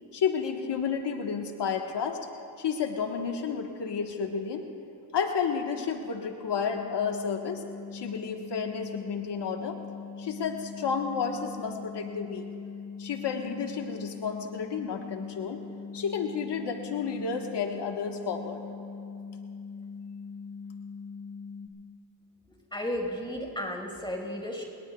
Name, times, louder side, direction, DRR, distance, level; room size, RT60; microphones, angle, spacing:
voice 1, 0.1-2.2 2.6-4.7 5.1-7.6 7.9-9.8 10.2-12.4 13.0-15.6 15.9-18.6, left 6 dB, 80° left, 3 dB, 1.4 m, -31 dB
sound 1, 6.7-21.7, left 5 dB, 30° left, 4.9 m, -41 dB
voice 2, 22.7-24.6, left 1 dB, 10° left, 0 dB, 5.0 m, -33 dB
26.5 x 21.0 x 2.3 m, 2.6 s
cardioid pair, 60°, 41 cm